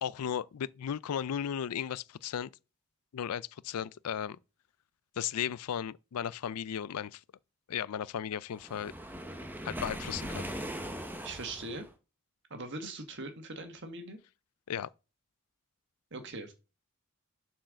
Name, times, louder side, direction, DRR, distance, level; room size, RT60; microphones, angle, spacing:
voice 1, 0.0-2.5 3.1-4.4 5.2-7.2 7.7-8.9 9.6-10.5 14.7-14.9, left 8 dB, 85° left, 0.4 m, -35 dB
Waves surf, 8.6-11.9, equal, 10° right, 1.0 m, -40 dB
voice 2, 11.2-11.9 12.5-14.2 16.1-16.5, right 2 dB, 55° right, 1.7 m, -41 dB
7.4 x 4.6 x 6.3 m
head